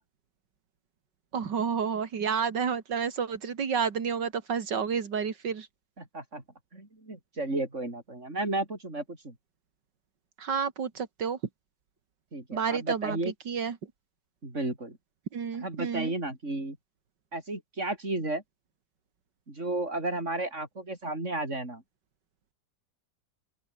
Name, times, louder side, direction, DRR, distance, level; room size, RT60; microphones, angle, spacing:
voice 1, 1.3-5.7 10.4-11.4 12.5-13.2 13.5-13.8 15.3-16.1, right 6 dB, 85° right, 2.6 m, -30 dB
voice 2, 6.0-6.4 6.7-9.4 12.3-13.3 14.4-15.0 15.6-16.8 17.3-18.4 19.5-21.8, right 2 dB, 40° right, 6.3 m, -33 dB
open air
omnidirectional pair, 1.8 m